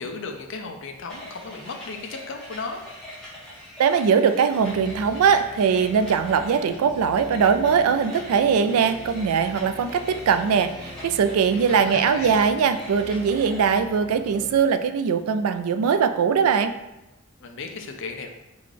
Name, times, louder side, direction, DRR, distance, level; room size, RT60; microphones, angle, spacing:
voice 1, 0.0-2.8 11.5-12.4 17.4-18.3, left 4 dB, 60° left, 4 dB, 0.5 m, -35 dB
sound 1, 1.1-14.0, left 1 dB, 5° left, 1.3 m, -43 dB
voice 2, 3.8-16.7, right 6 dB, 85° right, 10 dB, 0.3 m, -21 dB
sound 2, 4.6-14.6, left 2 dB, 85° left, 1.3 m, -42 dB
3.8 x 3.7 x 3.3 m, 0.94 s
head